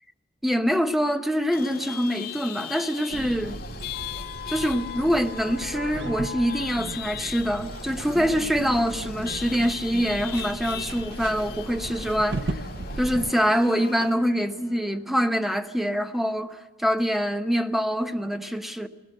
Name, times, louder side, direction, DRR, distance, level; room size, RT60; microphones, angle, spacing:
voice 1, 0.4-3.6 4.5-12.6 13.0-18.9, equal, ahead, 0.9 m, -25 dB
Chatter / Vehicle horn car horn honking / Traffic noise roadway noise, 1.5-14.1, left 7 dB, 60° left, 2.0 m, -38 dB
sound 1, 3.1-13.3, right 2 dB, 75° right, 0.7 m, -36 dB
Organ, 4.7-15.7, equal, 20° left, 6.6 m, -51 dB
20.0 x 18.0 x 7.8 m
head